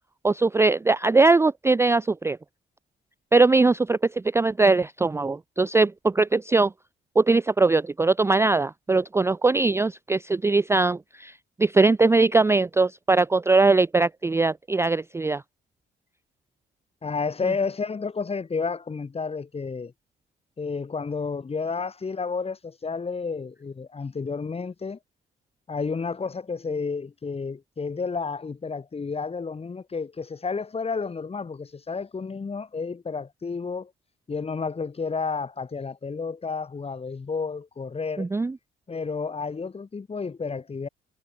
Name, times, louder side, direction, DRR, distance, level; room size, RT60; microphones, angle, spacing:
voice 1, 0.2-2.4 3.3-6.7 7.2-11.3 11.6-15.4 38.2-38.5, right 3 dB, 15° right, 0.4 m, -21 dB
voice 2, 17.0-19.9 20.6-25.0 25.7-33.9 34.3-38.3 38.9-40.9, left 4 dB, 30° left, 2.1 m, -31 dB
cardioid pair, 90°, 20 cm